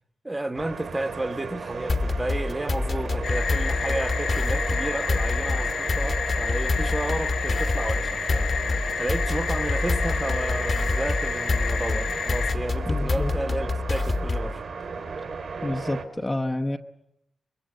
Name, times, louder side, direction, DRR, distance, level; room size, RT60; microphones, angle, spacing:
voice 1, 0.2-8.5 9.0-14.7, right 2 dB, 15° right, 1.2 m, -32 dB
sound 1, 0.5-16.0, right 4 dB, 60° right, 3.7 m, -35 dB
sound 2, 1.9-14.6, left 3 dB, 30° left, 1.3 m, -27 dB
sound 3, 3.2-12.5, left 6 dB, 70° left, 1.1 m, -30 dB
voice 2, 12.9-13.3 15.6-16.8, left 1 dB, 15° left, 0.9 m, -28 dB
24.5 x 23.0 x 7.9 m
wide cardioid pair, 135°, 0 cm